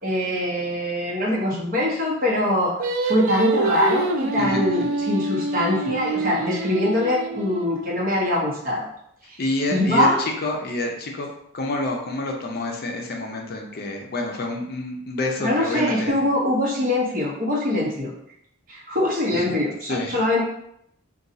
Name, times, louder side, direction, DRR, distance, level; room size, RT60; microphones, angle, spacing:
voice 1, 0.0-2.7 3.1-8.9 9.3-9.4 9.7-10.2 15.4-18.1 18.7-20.4, left 1 dB, 40° right, -4 dB, 0.9 m, -23 dB
Singing, 2.8-8.1, right 2 dB, 85° right, 0.4 m, -26 dB
voice 2, 9.4-11.3 11.5-16.2 19.3-19.4 19.9-20.2, left 2 dB, 50° left, 1 dB, 0.5 m, -28 dB
2.6 x 2.3 x 3.9 m, 0.73 s
head